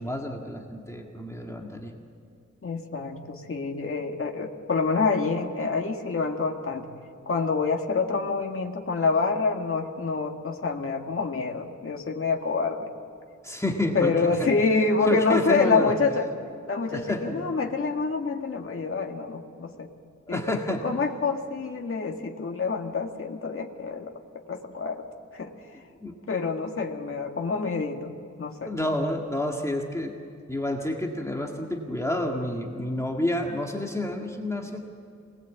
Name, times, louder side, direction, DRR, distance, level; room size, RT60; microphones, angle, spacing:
voice 1, 0.0-1.9 13.4-14.1 14.4-14.5 15.0-15.9 16.9-17.4 20.3-20.8 26.0-26.2 28.6-30.1 30.5-34.8, left 1 dB, 10° left, 0 dB, 1.9 m, -29 dB
voice 2, 2.6-6.9 7.3-12.9 13.9-16.3 16.7-19.9 20.3-24.1 24.5-25.0 25.3-25.5 26.3-28.1 28.4-28.7, left 4 dB, 45° left, 2 dB, 1.9 m, -27 dB
26.5 x 20.0 x 8.3 m, 2.5 s
wide cardioid pair, 165°, 30 cm